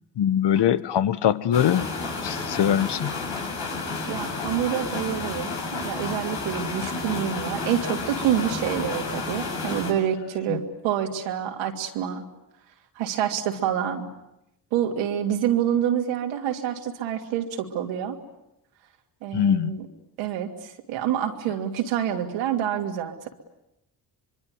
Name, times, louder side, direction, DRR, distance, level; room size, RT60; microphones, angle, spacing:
voice 1, 0.2-1.9 2.2-3.1 10.5-10.6 19.3-19.7, left 10 dB, 60° left, 15 dB, 1.4 m, -22 dB
sound 1, 1.5-9.9, left 3 dB, 80° left, 7.8 m, -31 dB
voice 2, 4.1-12.2 13.0-14.1 14.7-18.2 19.2-19.7 20.2-23.3, right 10 dB, 85° right, 2 dB, 2.9 m, -27 dB
25.5 x 23.5 x 9.5 m, 0.89 s
hypercardioid pair, 50°, 47 cm